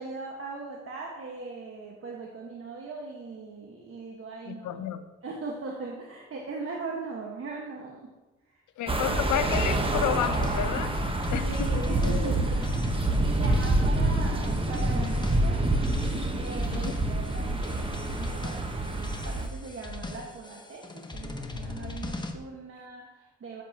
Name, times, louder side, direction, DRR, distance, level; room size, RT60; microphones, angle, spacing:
voice 1, 0.0-4.9 5.2-8.1 8.5-8.6 11.4-15.6 16.4-20.8 21.1-23.6, right 3 dB, 45° right, -1 dB, 1.5 m, -39 dB
voice 2, 4.5-5.0 8.8-10.9 11.3-12.3 13.4-13.6 16.7-16.9, left 10 dB, 75° left, 11 dB, 0.8 m, -31 dB
sound 1, 8.9-19.5, right 2 dB, 20° right, 1.2 m, -27 dB
sound 2, 9.5-22.3, left 2 dB, 15° left, 1.1 m, -40 dB
13.5 x 8.2 x 2.9 m, 1.1 s
cardioid pair, 90°, 30 cm